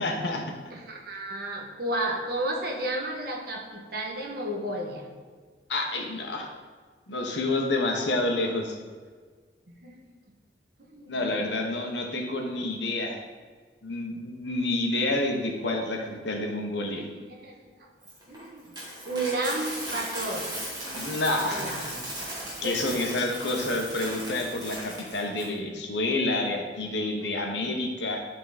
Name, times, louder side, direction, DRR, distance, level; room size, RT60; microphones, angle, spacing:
voice 1, 0.0-0.5 5.7-6.5 7.1-8.8 11.1-13.2 13.8-17.1 20.8-21.9 22.6-28.2, left 2 dB, 85° left, 2 dB, 1.3 m, -29 dB
voice 2, 0.7-5.1 9.7-10.0 10.8-11.2 17.3-17.5 17.8-17.9 18.3-18.7 19.0-20.5 21.5-21.9 22.6-22.8 27.5-27.7, right 1 dB, 60° right, 0 dB, 1.4 m, -32 dB
Coin (dropping), 18.0-25.5, right 1 dB, 25° right, 2.3 m, -37 dB
12.0 x 4.1 x 4.3 m, 1.5 s
head